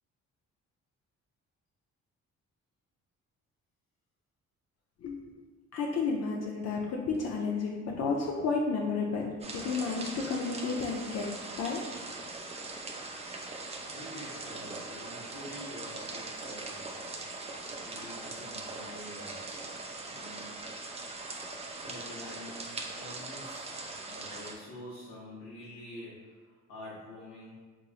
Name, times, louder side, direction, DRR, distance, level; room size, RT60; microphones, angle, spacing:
voice 1, 5.0-5.3 5.7-11.3 11.6-11.8, left 4 dB, 55° left, -1 dB, 0.5 m, -32 dB
sound 1, 9.4-24.5, right 3 dB, 20° right, 0.4 m, -41 dB
voice 2, 13.9-16.9 17.8-19.7 20.1-20.6 21.8-23.7 24.0-27.6, left 1 dB, 85° left, -7 dB, 0.9 m, -47 dB
3.6 x 2.9 x 2.4 m, 1.4 s
cardioid pair, 90°, 30 cm